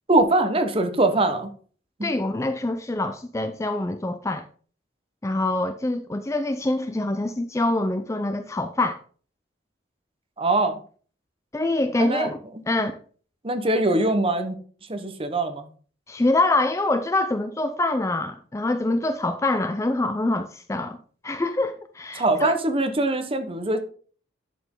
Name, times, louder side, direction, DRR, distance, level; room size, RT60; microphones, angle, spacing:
voice 1, 0.1-1.5 2.0-2.1 10.4-10.8 12.0-12.3 13.4-14.6 14.9-15.7 22.1-23.8, right 2 dB, 30° right, 1.0 m, -22 dB
voice 2, 2.0-4.4 5.2-9.0 11.5-12.4 12.7-12.9 16.1-21.0 21.2-22.5, left 2 dB, 15° left, 0.4 m, -25 dB
11.0 x 5.1 x 3.7 m
head